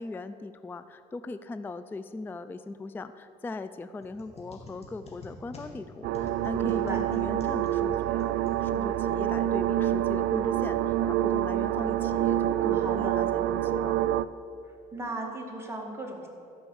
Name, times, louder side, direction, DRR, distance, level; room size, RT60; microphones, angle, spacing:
voice 1, 0.0-14.0, left 3 dB, 10° left, 12 dB, 0.3 m, -39 dB
sound 1, 4.0-9.1, left 2 dB, 40° left, 2.4 m, -48 dB
sound 2, 6.0-14.2, right 12 dB, 75° right, 0.4 m, -27 dB
voice 2, 6.6-7.0 12.7-13.2 14.6-16.3, right 2 dB, 15° right, -1 dB, 2.1 m, -37 dB
13.5 x 5.5 x 7.0 m, 2.7 s
cardioid pair, 110°, 17 cm